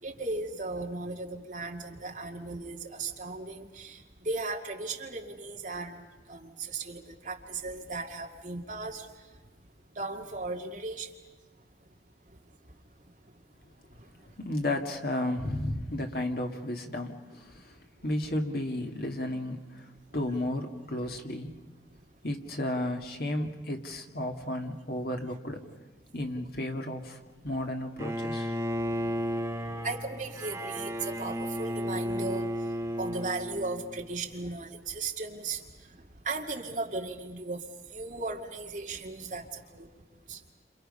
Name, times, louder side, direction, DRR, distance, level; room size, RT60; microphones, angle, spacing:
voice 1, 0.0-9.1 9.9-11.1 13.9-14.1 28.9-29.2 29.8-32.5 33.0-39.9 40.3-40.4, right 3 dB, 45° right, 2 dB, 2.1 m, -37 dB
voice 2, 14.4-19.9 20.1-21.6 22.2-25.6 26.1-27.2 27.4-28.5, left 1 dB, 55° left, 3 dB, 2.1 m, -33 dB
Bowed string instrument, 28.0-34.1, equal, 15° right, 1.2 m, -33 dB
30.0 x 27.5 x 5.6 m, 1.1 s
head